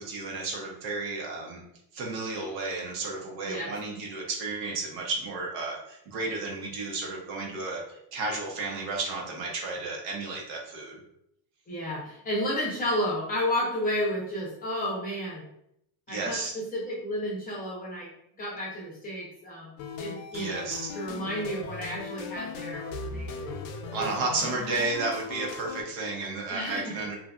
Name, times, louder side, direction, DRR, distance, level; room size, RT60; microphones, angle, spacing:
voice 1, 0.0-1.6 1.9-11.0 16.1-16.5 20.3-20.9 23.9-27.2, right 3 dB, 75° right, 0 dB, 0.9 m, -32 dB
voice 2, 11.7-15.4 16.1-18.1 18.4-19.7 20.0-20.7 20.9-23.7 24.0-24.1 24.4-24.6 26.5-26.9, equal, 20° left, -6 dB, 0.5 m, -32 dB
sound 1, 19.8-25.8, left 5 dB, 90° left, 0.6 m, -38 dB
2.7 x 2.4 x 2.3 m, 0.76 s
cardioid pair, 165°, 48 cm